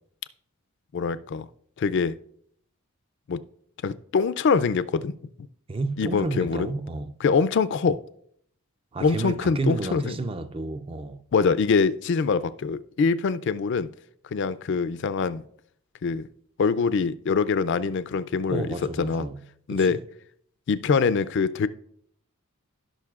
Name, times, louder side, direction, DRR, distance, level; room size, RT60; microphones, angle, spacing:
voice 1, 0.9-1.5 1.8-2.1 3.3-3.4 3.8-5.1 6.0-6.7 7.2-8.0 9.0-10.1 11.3-13.9 14.3-15.4 16.0-16.3 16.6-18.7 19.0-19.3 19.7-20.0 20.7-21.7, left 5 dB, 55° left, 0.3 m, -24 dB
voice 2, 5.7-7.1 8.9-11.2 18.5-19.4 19.7-20.0, right 3 dB, 25° right, 0.3 m, -31 dB
16.0 x 5.5 x 2.4 m
head